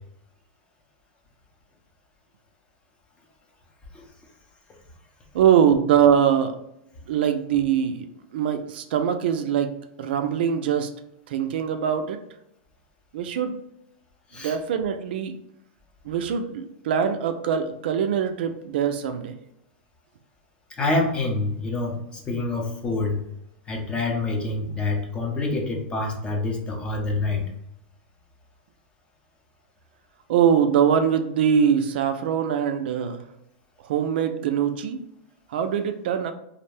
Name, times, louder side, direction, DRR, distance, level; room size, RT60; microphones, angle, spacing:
voice 1, 5.3-6.6 7.1-8.1 8.3-9.7 10.0-10.9 11.3-12.2 13.1-13.6 14.4-15.3 16.1-19.3 30.3-33.2 33.9-35.0 35.5-36.3, right 8 dB, 70° right, 7 dB, 0.3 m, -22 dB
voice 2, 20.7-23.2 23.7-27.5, left 2 dB, 15° left, 0 dB, 0.6 m, -26 dB
2.5 x 2.0 x 3.3 m, 0.80 s
supercardioid pair, 140°, 6 cm